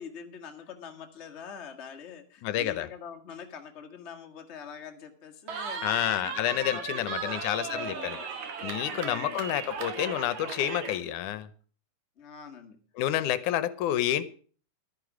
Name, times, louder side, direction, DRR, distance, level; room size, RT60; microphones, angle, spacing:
voice 1, 0.0-8.3 8.9-9.4 12.2-12.8, left 7 dB, 30° left, 4 dB, 1.3 m, -44 dB
voice 2, 2.4-2.9 5.8-8.2 8.6-11.5 13.0-14.2, left 12 dB, 80° left, 16 dB, 2.2 m, -29 dB
Cheering, 5.5-11.0, right 5 dB, 65° right, 3.2 m, -36 dB
12.5 x 10.5 x 6.1 m, 0.42 s
omnidirectional pair, 3.6 m